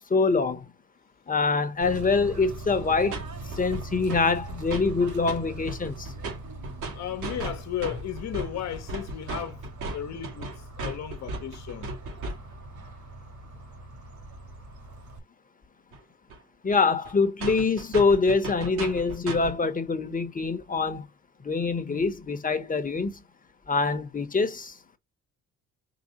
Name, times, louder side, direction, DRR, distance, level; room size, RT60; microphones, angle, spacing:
voice 1, 0.1-0.6 1.3-3.2 3.6-6.1 16.6-21.0 21.4-23.2 23.7-24.7, left 4 dB, 25° left, 1.2 m, -25 dB
Bird / Train, 1.8-15.2, right 2 dB, 70° right, 2.5 m, -42 dB
sound 1, 2.9-3.2 3.5-4.2 4.5-5.4 5.6-12.6 15.9-16.0 16.3-16.4 16.7-16.8 17.0-17.1 17.4-19.6, right 2 dB, 85° right, 2.5 m, -36 dB
voice 2, 6.9-11.9, left 10 dB, 60° left, 1.2 m, -35 dB
5.1 x 3.4 x 2.9 m
cardioid pair, 90°, 30 cm